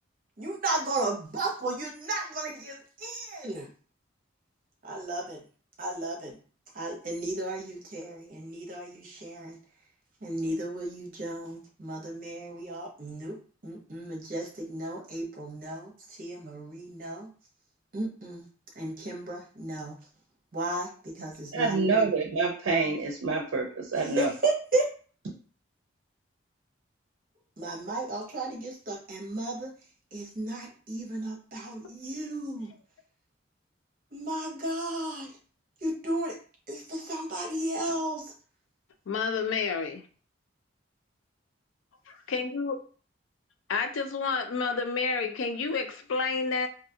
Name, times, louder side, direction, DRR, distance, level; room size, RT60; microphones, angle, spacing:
voice 1, 0.4-3.7 4.8-5.4 5.8-6.3 6.7-9.6 10.2-13.4 13.6-17.3 17.9-18.4 18.8-20.0 20.5-22.0 24.2-24.9 27.6-29.7 30.1-32.7 34.1-35.3 35.8-36.3 36.7-38.3, right 2 dB, 45° right, -1 dB, 0.7 m, -34 dB
voice 2, 21.5-24.3, right 4 dB, 75° right, 2 dB, 0.5 m, -27 dB
voice 3, 39.1-40.0 42.1-42.8 43.7-46.7, left 4 dB, 75° left, 7 dB, 0.4 m, -29 dB
2.6 x 2.3 x 2.7 m, 0.41 s
head